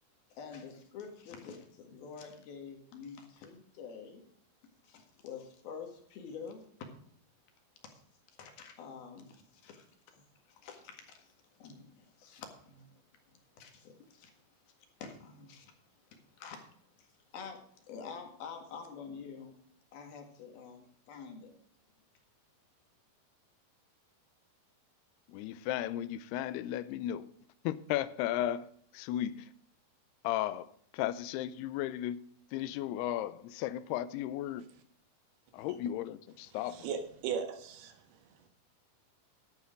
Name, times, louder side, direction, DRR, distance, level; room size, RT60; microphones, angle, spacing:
voice 1, 0.3-4.2 4.8-6.9 7.8-8.0 8.3-10.2 10.5-12.9 13.3-14.3 14.7-14.8 15.0-15.7 16.1-16.7 17.0-19.6 19.9-21.5, left 6 dB, 70° left, 3.6 m, -48 dB
voice 2, 25.3-27.3 27.6-28.7 28.9-29.5 30.2-32.2 32.5-34.7 35.5-36.9, left 12 dB, 85° left, 2.6 m, -35 dB
voice 3, 36.7-37.9, right 7 dB, 75° right, 3.3 m, -36 dB
11.5 x 8.5 x 5.0 m
omnidirectional pair, 4.6 m